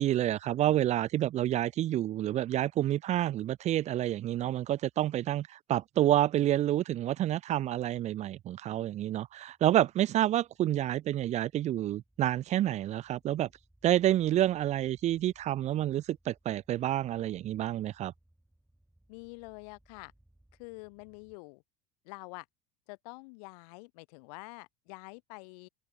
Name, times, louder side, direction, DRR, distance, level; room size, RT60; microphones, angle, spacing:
voice 1, 0.0-13.5 13.8-18.1, right 13 dB, 35° right, 0.5 m, -28 dB
sound 1, 8.6-21.4, right 1 dB, 5° right, 7.3 m, -67 dB
voice 2, 19.1-20.1 20.6-21.6 22.1-22.5 22.9-25.7, left 30 dB, 70° left, 3.5 m, -47 dB
supercardioid pair, 110°, 20 cm